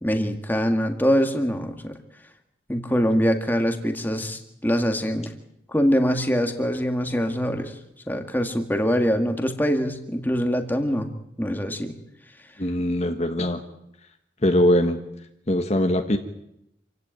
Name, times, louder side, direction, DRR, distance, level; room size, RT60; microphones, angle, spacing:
voice 1, 0.0-2.0 2.7-5.3 5.7-7.7 8.1-11.1 11.4-12.0, equal, 10° left, 5 dB, 1.9 m, -23 dB
voice 2, 12.6-13.6 14.4-15.0 15.5-16.2, left 1 dB, 35° left, 5 dB, 1.5 m, -21 dB
27.0 x 16.5 x 9.2 m, 0.83 s
head